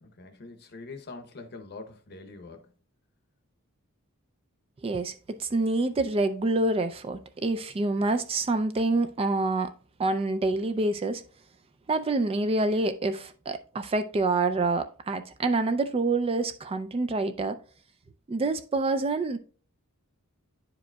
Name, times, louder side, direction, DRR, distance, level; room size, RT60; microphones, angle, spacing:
voice 1, 0.0-2.7, left 3 dB, 50° left, 0.8 m, -44 dB
voice 2, 4.8-9.7 10.0-11.2 11.9-17.6 18.3-19.4, right 2 dB, 25° right, 0.4 m, -27 dB
10.0 x 4.9 x 2.2 m
head